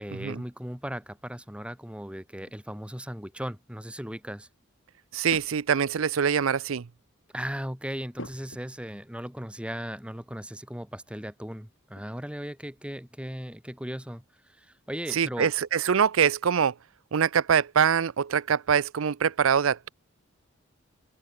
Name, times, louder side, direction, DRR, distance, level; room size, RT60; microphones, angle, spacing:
voice 1, 0.0-4.5 7.3-15.5, equal, 5° right, 3.8 m, -37 dB
sound 1, 2.4-2.7 5.3-6.0 6.5-6.8 8.1-9.1 9.5-9.6 11.9-12.3 12.5-13.2, left 1 dB, 65° left, 3.7 m, -46 dB
voice 2, 5.1-6.8 15.1-16.7 17.1-19.9, right 7 dB, 75° right, 0.5 m, -24 dB
open air
head